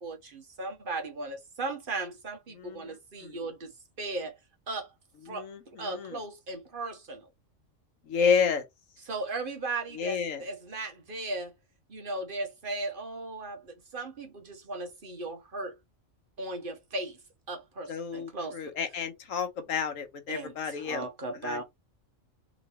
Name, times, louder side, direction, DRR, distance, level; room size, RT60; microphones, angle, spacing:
voice 1, 0.0-3.7 4.0-4.3 4.7-4.9 5.3-5.5 5.8-7.3 9.1-11.5 11.9-15.8 16.4-17.2 17.5-18.6 20.3-20.5 20.8-21.6, right 2 dB, 45° right, 1.0 m, -36 dB
voice 2, 2.5-3.4 5.2-6.2 8.1-8.7 9.9-10.4 17.9-21.6, left 6 dB, 85° left, 1.3 m, -31 dB
3.1 x 3.0 x 4.2 m
omnidirectional pair, 1.3 m